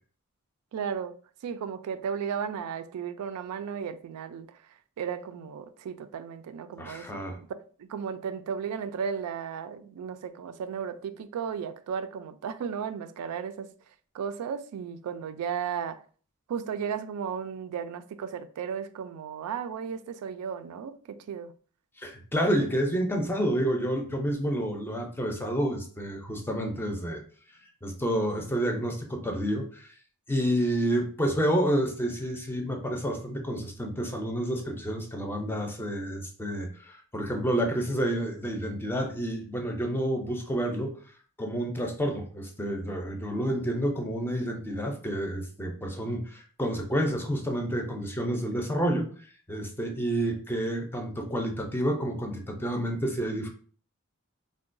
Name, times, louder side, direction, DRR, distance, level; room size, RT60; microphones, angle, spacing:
voice 1, 0.7-1.1 1.4-4.6 5.0-7.5 7.8-13.7 14.1-16.0 16.5-21.5, right 7 dB, 90° right, 0.3 m, -35 dB
voice 2, 6.8-7.4 22.0-27.2 27.8-29.9 30.3-41.0 41.4-49.1 49.5-53.5, equal, 10° left, 0.4 m, -29 dB
3.7 x 2.2 x 2.5 m
head